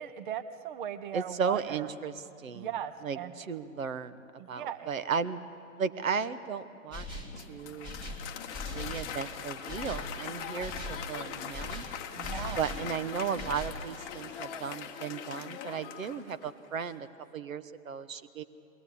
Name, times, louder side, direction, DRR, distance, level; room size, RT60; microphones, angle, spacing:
voice 1, 0.0-1.9 2.5-3.3 4.4-4.9 12.2-12.6, right 9 dB, 35° right, 13 dB, 0.8 m, -38 dB
voice 2, 1.1-2.7 3.0-5.4 5.8-7.1 7.4-8.0 8.7-11.9 12.6-17.1 17.3-18.4, right 6 dB, 70° right, 13 dB, 1.1 m, -35 dB
sound 1, 6.9-7.4 7.8-9.2 9.7-10.1 10.6-11.1 11.5-12.9 13.4-13.8, left 2 dB, 10° right, 1.7 m, -40 dB
Applause, 7.1-16.7, left 8 dB, 20° left, 0.9 m, -41 dB
21.0 x 17.5 x 8.3 m, 2.7 s
figure-of-eight pair, 130°, 42 cm